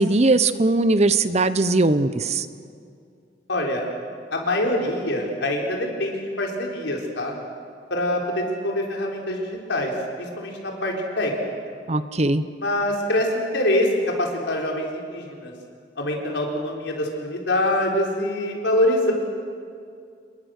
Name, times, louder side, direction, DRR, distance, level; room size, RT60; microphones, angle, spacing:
voice 1, 0.0-2.5 11.9-12.4, right 2 dB, 35° right, 13 dB, 0.8 m, -20 dB
voice 2, 3.5-3.9 4.3-7.3 7.9-9.9 10.2-11.3 12.6-15.5 16.0-19.1, left 1 dB, 75° left, 0 dB, 4.2 m, -24 dB
28.0 x 22.0 x 6.6 m, 2.3 s
head